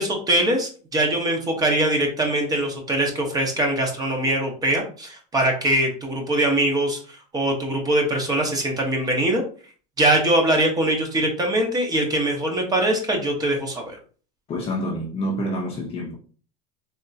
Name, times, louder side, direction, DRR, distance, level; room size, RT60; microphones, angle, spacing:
voice 1, 0.0-7.0 7.3-9.4 10.0-14.0, right 1 dB, 20° right, 1.1 m, -22 dB
voice 2, 14.5-16.2, equal, 30° left, 0.7 m, -27 dB
3.6 x 2.8 x 2.8 m
supercardioid pair, 125°, 19 cm